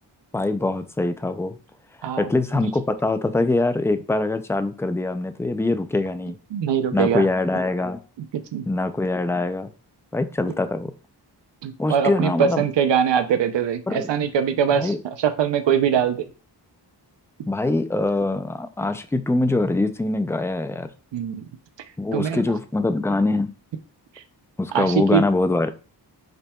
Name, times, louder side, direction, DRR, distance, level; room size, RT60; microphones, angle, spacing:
voice 1, 0.3-1.6 2.2-6.4 6.9-8.0 8.7-9.7 10.1-10.9 11.8-12.7 13.9-14.1 14.8-15.0 17.5-20.9 22.0-23.5 24.6-25.7, left 2 dB, 5° left, 9 dB, 0.3 m, -23 dB
voice 2, 6.5-7.3 8.2-8.3 8.5-8.6 11.6-16.3 21.1-21.4 22.1-22.4 24.7-25.2, right 8 dB, 85° right, 9 dB, 0.6 m, -22 dB
5.1 x 4.3 x 2.3 m, 0.36 s
wide cardioid pair, 105°, 42 cm